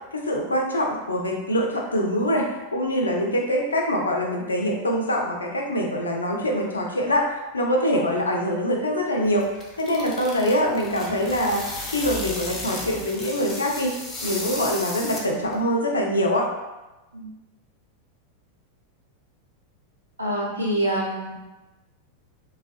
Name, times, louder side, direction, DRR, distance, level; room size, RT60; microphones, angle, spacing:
voice 1, 0.1-2.5 2.7-11.6 11.9-14.0 14.2-16.5, equal, 75° left, 0 dB, 0.4 m, -24 dB
sound 1, 9.2-15.6, left 2 dB, 20° left, 0.5 m, -35 dB
voice 2, 20.2-21.3, right 1 dB, 85° right, -5 dB, 0.7 m, -26 dB
3.4 x 2.0 x 2.5 m, 1.1 s
figure-of-eight pair, 90°, 0 cm